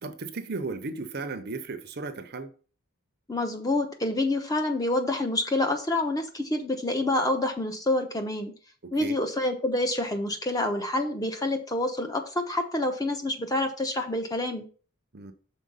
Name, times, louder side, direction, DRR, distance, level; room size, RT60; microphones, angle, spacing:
voice 1, 0.0-2.5 8.8-9.2 15.1-15.3, right 3 dB, 45° right, 0.8 m, -35 dB
voice 2, 3.3-8.5 8.9-14.6, left 1 dB, 15° left, 1.0 m, -27 dB
6.5 x 4.4 x 5.6 m
head